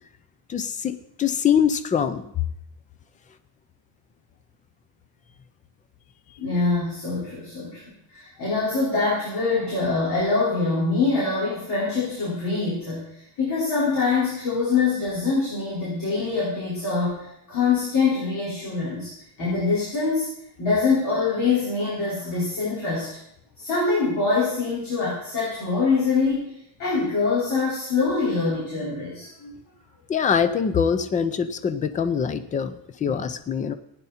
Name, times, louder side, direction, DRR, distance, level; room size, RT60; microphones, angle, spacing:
voice 1, 0.5-2.3 30.1-33.7, left 7 dB, 15° left, 11 dB, 0.4 m, -24 dB
voice 2, 6.4-19.1 19.4-20.3 20.6-23.1 23.6-26.5 26.8-29.5 33.0-33.1, left 4 dB, 45° left, -8 dB, 4.8 m, -24 dB
15.5 x 9.7 x 4.3 m, 0.76 s
cardioid pair, 175°, 47 cm